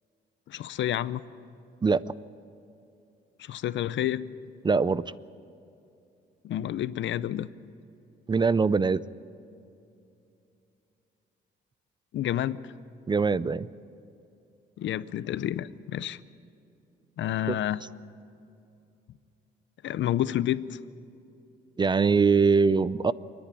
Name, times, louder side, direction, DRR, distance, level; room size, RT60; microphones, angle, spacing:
voice 1, 0.5-1.2 3.4-4.3 6.4-7.5 12.1-12.7 14.8-16.2 17.2-17.8 19.8-20.8, left 12 dB, 70° left, 17 dB, 0.6 m, -29 dB
voice 2, 1.8-2.1 4.6-5.1 8.3-9.0 13.1-13.7 17.5-17.6 21.8-23.1, right 5 dB, 25° right, 18 dB, 0.4 m, -22 dB
28.0 x 10.5 x 9.8 m, 2.7 s
cardioid pair, 90°, 20 cm